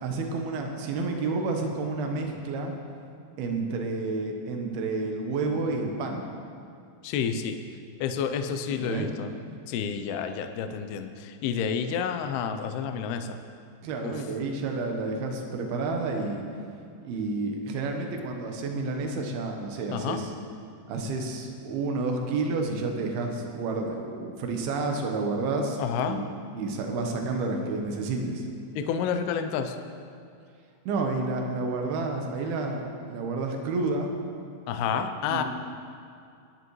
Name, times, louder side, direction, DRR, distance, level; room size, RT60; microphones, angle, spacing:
voice 1, 0.0-2.8 3.4-6.3 8.7-9.1 13.8-16.4 17.0-20.3 20.9-26.3 26.5-28.4 30.9-34.1 35.3-35.4, right 3 dB, 70° right, 2 dB, 2.6 m, -30 dB
voice 2, 7.0-7.6 8.0-9.3 9.7-13.4 14.0-14.2 19.9-20.2 25.8-26.2 28.8-29.8 34.7-35.4, left 7 dB, 85° left, 7 dB, 2.3 m, -29 dB
21.5 x 10.0 x 3.2 m, 2.4 s
omnidirectional pair, 5.4 m